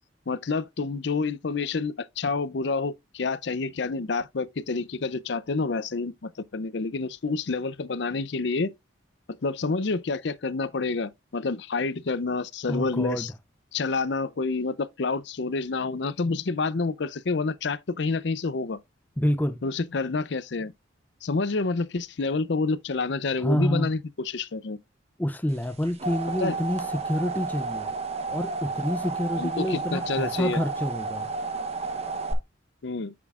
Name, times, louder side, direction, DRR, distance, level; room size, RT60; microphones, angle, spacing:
voice 1, 0.3-8.7 9.4-13.3 13.7-18.8 19.6-20.7 21.2-24.8 26.4-26.6 29.4-30.6 32.8-33.1, left 3 dB, 60° left, 0.5 m, -28 dB
voice 2, 12.7-13.3 19.2-19.6 23.4-23.9 25.2-27.9 28.3-31.3, equal, 10° left, 0.4 m, -28 dB
sound 1, 25.6-32.3, right 4 dB, 30° right, 1.0 m, -32 dB
9.3 x 6.1 x 2.4 m
head